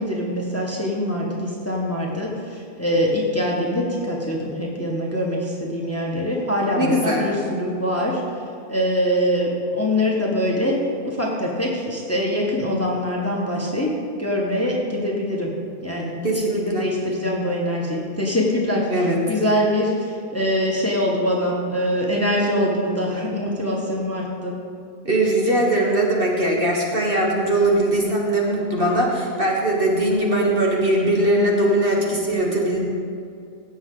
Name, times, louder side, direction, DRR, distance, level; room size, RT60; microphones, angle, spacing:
voice 1, 0.0-13.9 14.2-15.5 15.8-24.5, equal, 10° left, -2 dB, 1.3 m, -24 dB
voice 2, 6.8-7.3 16.2-16.9 18.9-19.2 25.0-32.8, right 1 dB, 40° right, -2 dB, 1.5 m, -20 dB
16.5 x 7.1 x 3.9 m, 2.5 s
omnidirectional pair, 1.5 m